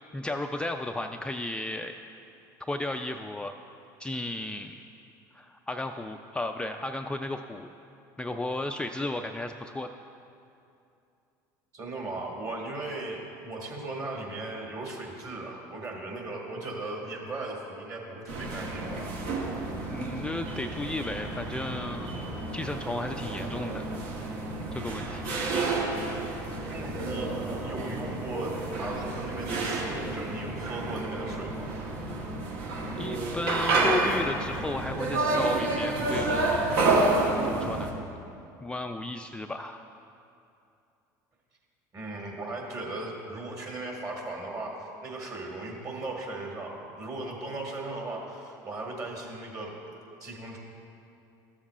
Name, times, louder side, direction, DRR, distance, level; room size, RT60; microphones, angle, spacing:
voice 1, 0.1-1.9 2.7-3.5 4.0-4.7 5.3-7.7 8.2-9.9 19.9-23.8 24.4-25.2 33.0-36.7 37.4-37.9 38.6-39.9, left 2 dB, 10° left, 4 dB, 0.3 m, -34 dB
voice 2, 11.7-19.2 26.7-31.8 41.9-49.8 50.2-50.6, right 2 dB, 40° right, 0 dB, 1.9 m, -37 dB
sound 1, 18.3-37.9, right 2 dB, 70° right, 1.2 m, -30 dB
13.5 x 7.2 x 2.4 m, 2.6 s
supercardioid pair, 90°, 10 cm